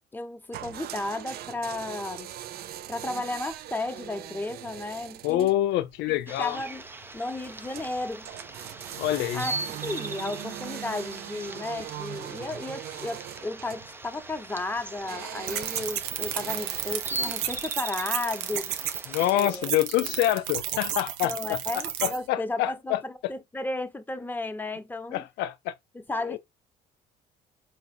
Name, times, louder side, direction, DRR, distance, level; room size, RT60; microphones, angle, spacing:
voice 1, 0.0-2.3 2.9-5.5 6.4-6.8 7.1-8.3 9.3-9.5 9.8-18.7 19.3-19.7 21.2-25.2 25.9-26.4, left 2 dB, 10° left, 0.9 m, -34 dB
sound 1, 0.5-17.7, right 12 dB, 65° right, 0.6 m, -41 dB
voice 2, 5.2-6.6 9.0-9.4 19.1-23.0 25.1-25.7 26.3-26.4, left 14 dB, 90° left, 0.6 m, -26 dB
sound 2, 6.3-19.4, right 2 dB, 15° right, 0.6 m, -40 dB
sound 3, 15.5-22.2, right 11 dB, 90° right, 0.9 m, -32 dB
4.1 x 2.9 x 4.3 m
cardioid pair, 110°, 17 cm